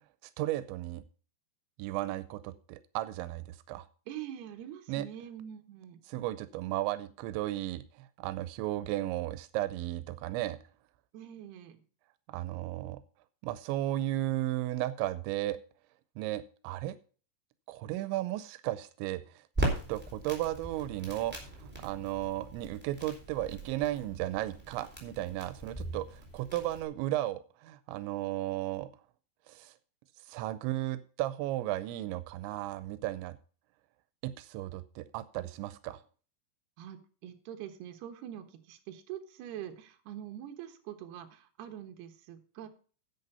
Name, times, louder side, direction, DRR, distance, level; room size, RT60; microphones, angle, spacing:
voice 1, 0.4-1.0 1.8-3.9 4.9-5.1 6.1-10.6 12.3-13.0 13.4-15.6 16.2-17.0 17.7-28.9 29.5-29.7 30.3-33.4 34.2-36.0, right 15 dB, 90° right, 14 dB, 3.0 m, -35 dB
voice 2, 4.1-6.0 11.1-11.8 36.8-42.7, right 10 dB, 70° right, 6 dB, 3.2 m, -44 dB
Crackle, 19.5-26.8, right 1 dB, 5° right, 3.2 m, -39 dB
10.5 x 8.1 x 5.5 m, 0.40 s
omnidirectional pair, 5.1 m